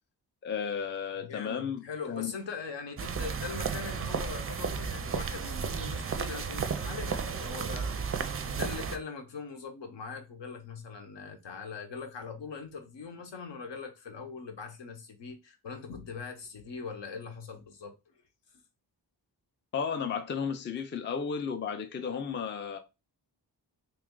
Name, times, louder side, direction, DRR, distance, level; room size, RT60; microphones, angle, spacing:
voice 1, 0.4-2.3 19.7-22.8, left 6 dB, 25° left, 0.4 m, -33 dB
voice 2, 1.2-8.0 8.4-18.1, left 5 dB, 75° left, 0.9 m, -41 dB
sound 1, 3.0-9.0, right 6 dB, 35° right, 0.4 m, -33 dB
3.2 x 2.4 x 3.6 m
cardioid pair, 90°, 43 cm